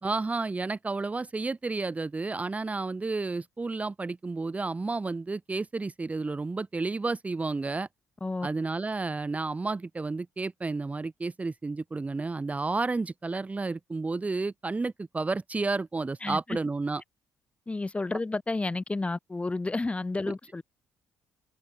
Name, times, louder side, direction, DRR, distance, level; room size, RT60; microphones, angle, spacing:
voice 1, 0.0-7.9 8.4-17.0, right 3 dB, 25° right, 2.0 m, -31 dB
voice 2, 16.2-16.6 17.7-20.6, left 3 dB, 20° left, 3.8 m, -31 dB
supercardioid pair, 70°, 6 cm